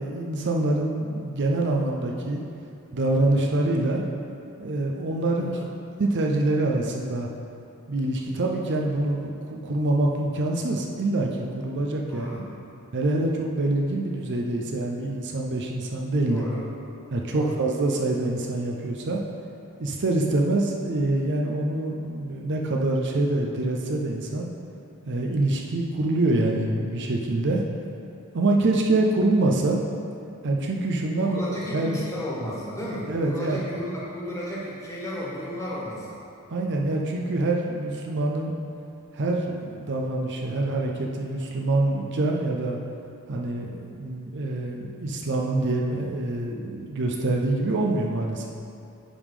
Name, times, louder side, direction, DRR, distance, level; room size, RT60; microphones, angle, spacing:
voice 1, 0.0-2.4 2.9-4.0 4.6-5.5 6.0-7.3 7.9-11.3 11.6-12.3 12.9-16.4 17.1-19.2 19.8-24.5 25.1-27.6 28.3-29.8 30.4-31.4 31.7-32.0 33.1-33.6 36.5-38.5 39.1-42.8 43.3-48.5, right 2 dB, 50° right, 0 dB, 0.6 m, -25 dB
voice 2, 5.3-5.6 12.1-12.4 16.3-16.7 17.3-17.6 31.2-36.2, equal, 15° left, -7 dB, 1.6 m, -33 dB
9.9 x 3.7 x 4.9 m, 2.6 s
head